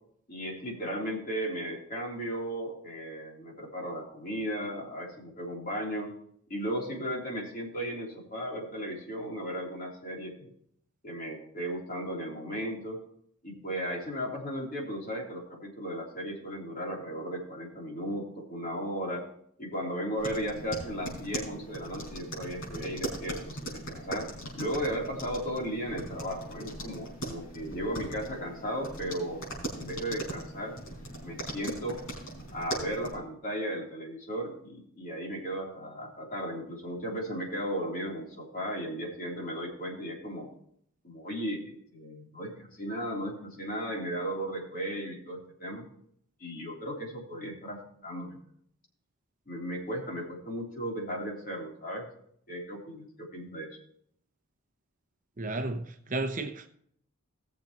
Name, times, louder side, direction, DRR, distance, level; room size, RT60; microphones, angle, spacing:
voice 1, 0.3-6.2 6.5-10.5 11.0-13.0 13.4-19.2 19.6-29.4 29.7-30.8 31.2-32.0 32.5-40.5 41.0-45.8 46.4-48.4 49.5-52.1 52.5-53.7, equal, 40° left, 3.3 m, -35 dB
sound 1, 20.2-33.1, right 1 dB, 70° left, 4.6 m, -40 dB
voice 2, 55.4-56.7, right 2 dB, 35° right, 0.8 m, -33 dB
18.0 x 7.2 x 3.0 m
head